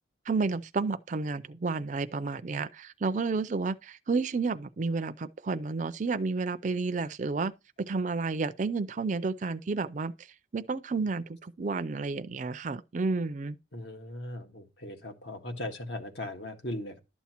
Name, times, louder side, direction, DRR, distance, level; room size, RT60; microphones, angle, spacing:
voice 1, 0.3-10.1 10.5-13.6, right 4 dB, 40° right, 0.4 m, -31 dB
voice 2, 13.7-17.0, left 1 dB, 70° left, 1.7 m, -38 dB
12.0 x 7.1 x 2.9 m
head